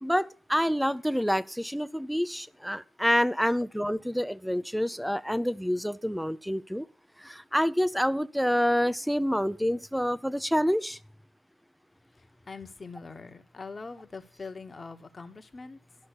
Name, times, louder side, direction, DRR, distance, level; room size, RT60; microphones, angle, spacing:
voice 1, 0.0-6.9 7.2-11.0, equal, ahead, 0.6 m, -27 dB
voice 2, 12.1-15.8, left 4 dB, 25° left, 1.3 m, -43 dB
12.0 x 5.5 x 8.3 m
cardioid pair, 90°, 0 cm